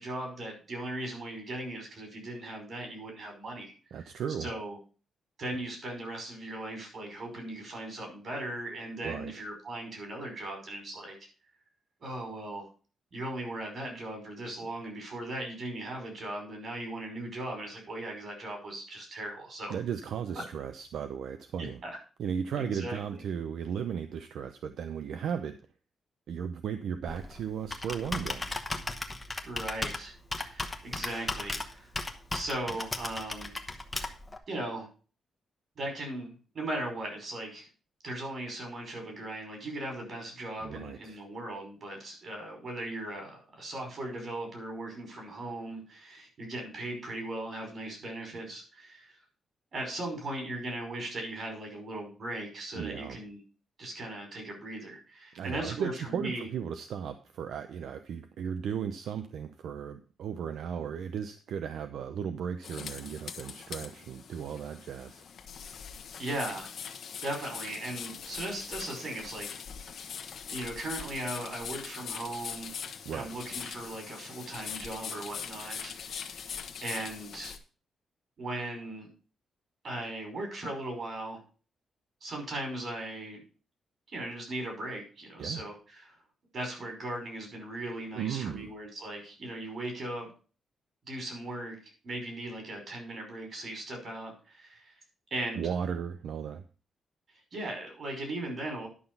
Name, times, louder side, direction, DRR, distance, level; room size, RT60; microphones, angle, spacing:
voice 1, 0.0-3.7 4.0-4.1 4.4-4.8 5.4-11.2 12.0-12.7 13.1-19.8 21.6-22.0 22.6-23.2 29.4-30.1 30.4-31.9 32.3-33.5 34.5-34.9 35.8-37.7 38.0-49.2 49.7-53.4 53.8-56.5 66.2-66.7 67.2-69.5 70.5-72.7 73.1-76.4 76.8-77.5 78.4-79.1 79.8-81.4 82.2-83.4 84.1-86.1 86.5-90.3 91.1-91.8 92.0-94.9 95.3-95.7 97.5-98.9, right 1 dB, 45° right, 2 dB, 5.3 m, -38 dB
voice 2, 3.9-4.5 9.0-9.3 19.7-21.8 22.2-25.6 26.3-28.5 40.6-41.2 52.7-53.2 55.3-65.2 73.0-73.3 85.4-85.6 88.1-88.7 95.6-96.6, right 7 dB, 75° right, 9 dB, 0.7 m, -36 dB
Computer keyboard, 27.1-34.4, left 2 dB, 15° left, 1.1 m, -36 dB
sound 1, 62.6-77.6, left 7 dB, 60° left, 1.2 m, -42 dB
11.0 x 5.9 x 5.5 m, 0.38 s
wide cardioid pair, 150°, 0 cm